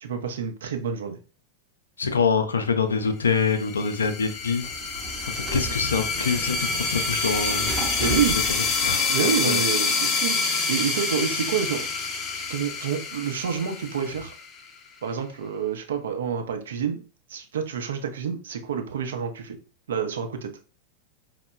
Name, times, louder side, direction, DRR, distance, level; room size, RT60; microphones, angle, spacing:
voice 1, 0.0-1.2 8.0-8.4 9.1-10.4 10.7-11.9 12.5-14.3 15.0-17.0 17.3-19.6 19.9-20.5, right 7 dB, 65° right, 6 dB, 0.5 m, -28 dB
voice 2, 2.0-4.7 5.3-7.7 8.2-8.3 8.8-9.6, left 5 dB, 70° left, 8 dB, 0.4 m, -25 dB
sound 1, 3.4-14.7, left 4 dB, 25° left, 0.6 m, -27 dB
Sliding door, 4.3-9.4, right 2 dB, 20° right, 0.7 m, -37 dB
4.3 x 2.1 x 2.2 m, 0.35 s
figure-of-eight pair, 90°, 0 cm